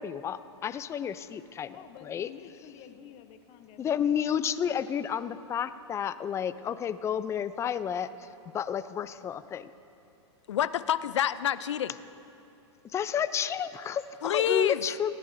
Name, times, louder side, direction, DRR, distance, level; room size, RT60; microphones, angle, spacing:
voice 1, 0.0-2.3 3.8-8.3 8.5-9.7 12.9-15.1, left 8 dB, 20° left, 15 dB, 0.4 m, -31 dB
voice 2, 1.7-4.4, left 9 dB, 40° left, 9 dB, 0.8 m, -50 dB
voice 3, 10.5-12.0 14.2-14.8, left 10 dB, 85° left, 16 dB, 0.4 m, -27 dB
19.5 x 14.5 x 2.7 m, 2.7 s
hypercardioid pair, 120°, 15 cm